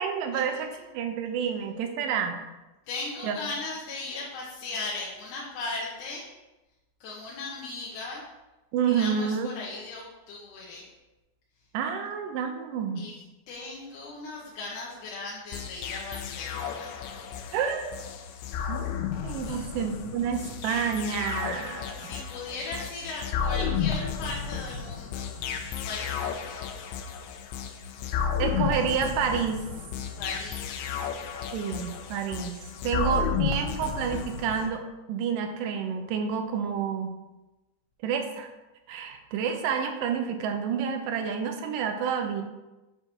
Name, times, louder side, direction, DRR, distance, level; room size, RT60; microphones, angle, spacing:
voice 1, 0.0-2.4 3.2-3.4 8.7-9.5 11.7-13.1 17.5-18.0 18.7-18.8 19.2-22.1 28.4-29.6 31.5-32.6 32.8-37.2 38.0-38.5 38.9-42.4, right 7 dB, 85° right, 5 dB, 2.2 m, -29 dB
voice 2, 2.9-6.3 7.0-8.2 8.9-10.9 13.0-13.1 13.5-16.9 19.4-19.7 21.9-25.3 25.8-26.9 30.2-31.8, left 3 dB, 75° left, -5 dB, 2.3 m, -38 dB
sound 1, 15.5-34.7, left 7 dB, 90° left, 2.3 m, -33 dB
6.4 x 4.6 x 4.4 m, 1.0 s
omnidirectional pair, 3.9 m